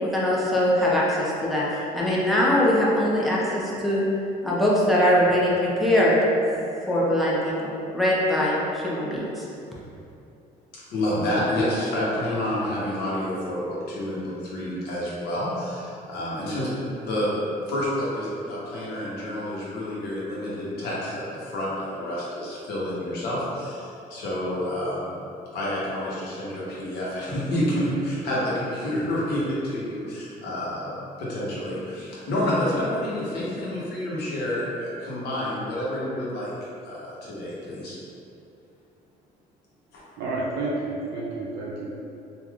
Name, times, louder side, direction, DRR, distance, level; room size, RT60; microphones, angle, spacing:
voice 1, 0.0-1.6 1.9-4.1 4.4-6.2 6.9-8.6 8.8-9.4, left 1 dB, ahead, -7 dB, 0.6 m, -22 dB
voice 2, 10.7-16.7 17.0-17.4 17.6-25.1 25.5-30.9 31.2-36.5 36.8-38.0 39.9-40.0, left 1 dB, 70° left, -7 dB, 1.0 m, -29 dB
voice 3, 40.2-41.9, right 2 dB, 70° right, -5 dB, 0.5 m, -30 dB
3.4 x 2.5 x 2.4 m, 2.7 s
cardioid pair, 110°, 17 cm